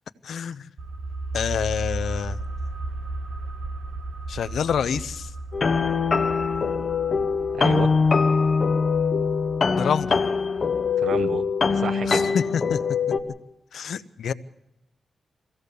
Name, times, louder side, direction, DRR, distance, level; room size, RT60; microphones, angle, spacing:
voice 1, 0.2-0.7 1.3-2.4 4.3-5.3 9.8-10.2 12.1-12.8 13.7-14.3, left 7 dB, 80° left, 13 dB, 0.7 m, -27 dB
sound 1, 0.8-12.1 12.4-12.5, right 2 dB, 85° right, 4.3 m, -36 dB
sound 2, 5.5-13.2, left 5 dB, 40° left, 1.0 m, -23 dB
voice 2, 7.5-7.9 11.0-12.3, right 5 dB, 70° right, 12 dB, 0.9 m, -30 dB
24.0 x 16.0 x 6.8 m, 0.88 s
wide cardioid pair, 150°, 0 cm